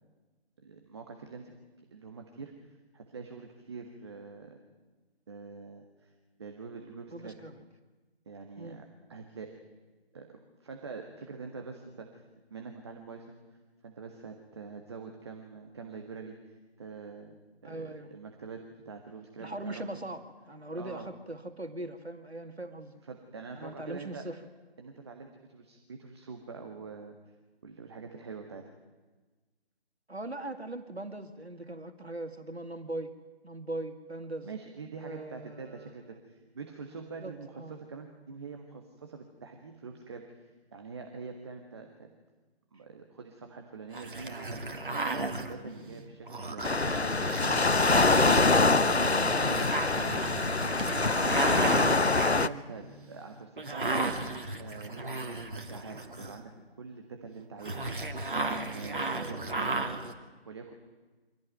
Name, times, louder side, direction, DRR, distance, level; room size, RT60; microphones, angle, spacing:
voice 1, 0.6-1.6 1.9-4.6 5.3-6.1 6.4-7.3 8.2-9.6 10.1-10.3 10.6-12.2 12.5-13.4 13.8-20.1 20.7-21.1 23.1-24.3 24.8-27.3 27.6-28.7 34.4-42.1 42.7-50.6 51.0-54.1 54.6-56.5 56.8-60.0 60.4-60.7, right 4 dB, 25° right, 4 dB, 1.7 m, -45 dB
voice 2, 7.1-7.5 8.6-8.8 17.6-18.1 19.4-23.0 23.6-24.4 30.1-34.5 35.0-35.9 37.2-37.8 59.1-59.5, right 2 dB, 85° right, 7 dB, 2.4 m, -40 dB
sound 1, 43.9-56.6 57.6-60.1, right 2 dB, 55° right, 2.8 m, -35 dB
Waves surf, 46.6-52.5, left 3 dB, 90° left, 0.9 m, -24 dB
25.0 x 17.0 x 9.3 m, 1.3 s
figure-of-eight pair, 155°, 31 cm